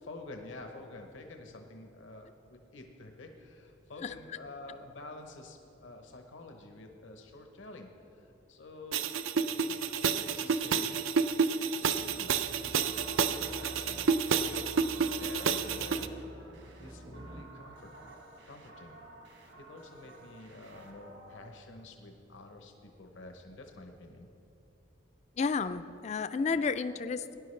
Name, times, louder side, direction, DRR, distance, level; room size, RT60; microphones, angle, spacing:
voice 1, 0.0-9.1 9.8-10.9 11.8-13.0 13.3-14.1 14.9-16.1 16.8-17.9 18.4-19.0 19.5-24.3, left 2 dB, 70° left, 4 dB, 0.9 m, -49 dB
sound 1, 8.9-16.1, right 5 dB, 80° right, 0.5 m, -30 dB
sound 2, 11.9-17.4, equal, 20° right, 0.5 m, -49 dB
sound 3, 12.6-21.5, right 2 dB, 65° right, 1.3 m, -53 dB
voice 2, 25.4-27.4, left 5 dB, 35° left, 12 dB, 0.3 m, -31 dB
19.0 x 10.5 x 3.2 m, 3.0 s
head